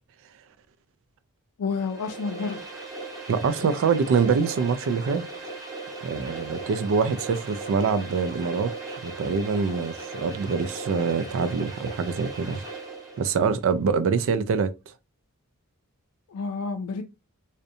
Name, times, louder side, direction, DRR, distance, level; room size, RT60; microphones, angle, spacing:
voice 1, 1.6-2.7 16.3-17.0, left 4 dB, 85° left, 0.4 m, -30 dB
sound 1, 1.7-13.3, right 3 dB, 15° right, 0.7 m, -38 dB
voice 2, 3.3-5.3 6.0-12.6 13.2-14.7, right 5 dB, 60° right, 0.3 m, -25 dB
2.6 x 2.1 x 2.5 m
head